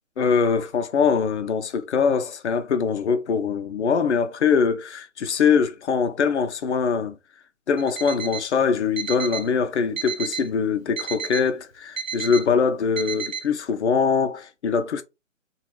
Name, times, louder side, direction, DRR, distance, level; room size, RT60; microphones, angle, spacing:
voice 1, 0.2-7.1 7.7-15.0, left 6 dB, 60° left, 0.6 m, -23 dB
Alarm, 7.8-8.5 9.0-9.5 10.0-10.5 11.0-11.5 12.0-12.5 13.0-13.5, right 7 dB, 85° right, 0.9 m, -32 dB
3.5 x 2.4 x 3.1 m
figure-of-eight pair, 130°, 39 cm